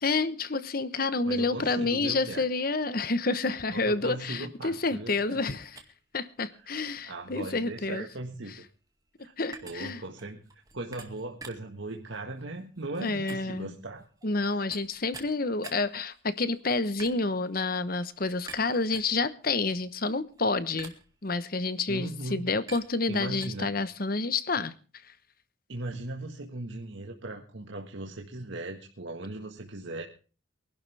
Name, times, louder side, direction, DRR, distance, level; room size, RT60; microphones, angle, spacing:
voice 1, 0.0-5.7 6.1-8.0 9.4-10.0 13.0-13.7 14.2-20.9 21.2-24.7, left 3 dB, 45° left, 14 dB, 1.0 m, -29 dB
voice 2, 1.3-2.5 3.7-5.4 6.5-6.6 7.0-8.5 9.2-9.3 9.6-10.4 10.7-14.0 21.9-22.5 23.1-23.8 25.7-30.0, right 2 dB, 70° right, 2 dB, 1.6 m, -38 dB
sound 1, 5.6-23.5, right 4 dB, 20° right, 2.1 m, -50 dB
24.0 x 11.5 x 3.5 m, 0.37 s
head